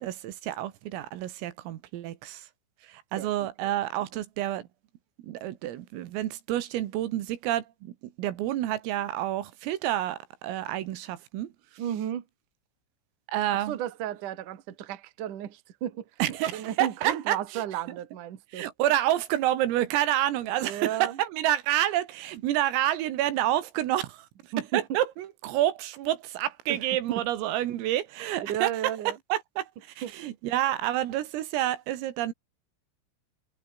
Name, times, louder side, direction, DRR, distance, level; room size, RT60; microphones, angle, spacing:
voice 1, 0.0-2.5 2.9-4.7 5.2-7.9 8.2-11.5 13.3-13.8 16.2-17.6 18.5-24.3 24.7-28.7 29.1-29.7 30.0-32.3, right 13 dB, 80° right, 4.3 m, -28 dB
voice 2, 11.8-12.2 13.5-18.7 20.6-21.2 24.5-25.0 26.7-27.2 28.4-29.2 30.0-30.2, right 11 dB, 50° right, 2.8 m, -34 dB
omnidirectional pair, 6.0 m